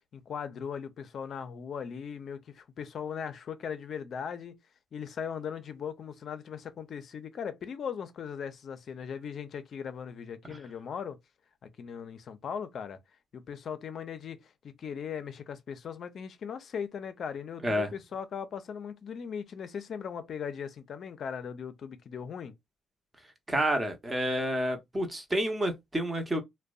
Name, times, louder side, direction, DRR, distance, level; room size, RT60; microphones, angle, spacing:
voice 1, 0.1-4.6 4.9-11.2 11.6-13.0 13.3-22.5, left 7 dB, 60° left, 0.4 m, -39 dB
voice 2, 23.5-26.4, equal, 20° right, 0.7 m, -29 dB
2.5 x 2.1 x 2.3 m
cardioid pair, 90°, 0 cm